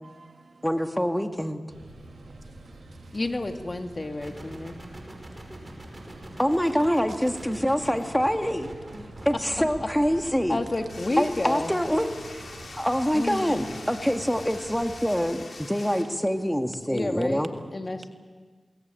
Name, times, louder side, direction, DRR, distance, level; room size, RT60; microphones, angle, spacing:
voice 1, 0.0-0.6 2.1-3.2 5.3-5.6 5.9-6.3 9.2-9.3, right 3 dB, 70° right, 7 dB, 1.7 m, -56 dB
voice 2, 0.6-1.7 6.4-8.7 9.3-10.6 11.2-12.4 12.7-17.5, equal, 5° left, 6 dB, 2.1 m, -25 dB
sound 1, 1.7-15.2, right 2 dB, 85° right, 5.9 m, -46 dB
voice 3, 3.1-4.8 9.5-9.9 10.2-11.8 13.1-13.7 16.9-18.1, left 2 dB, 40° left, 6 dB, 2.0 m, -31 dB
sound 2, 4.2-10.5, right 1 dB, 25° right, 5.5 m, -45 dB
sound 3, 10.9-16.0, left 3 dB, 75° left, 3.8 m, -44 dB
21.5 x 19.0 x 9.1 m, 1.5 s
cardioid pair, 45°, 0 cm